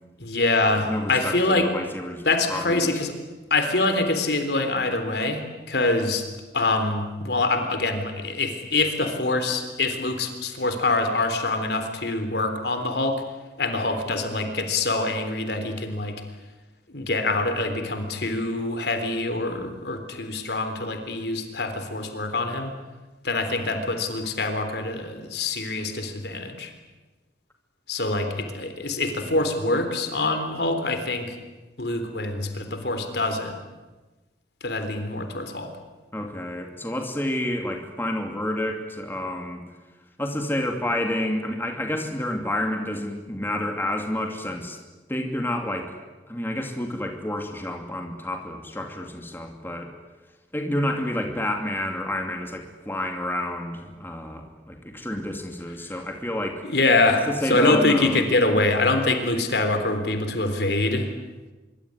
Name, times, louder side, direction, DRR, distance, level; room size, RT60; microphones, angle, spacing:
voice 1, 0.2-1.7 2.3-3.1 3.5-6.3 6.5-13.2 13.6-16.2 16.9-22.7 23.2-26.7 27.9-31.4 31.8-33.6 34.6-35.7 56.6-61.1, left 2 dB, 65° left, 7 dB, 3.8 m, -25 dB
voice 2, 0.9-2.9 28.1-28.2 36.1-39.6 40.2-44.8 45.1-45.9 46.3-49.9 50.5-56.6 57.1-58.2, left 1 dB, 10° left, 3 dB, 2.7 m, -29 dB
25.0 x 24.0 x 9.8 m, 1.2 s
head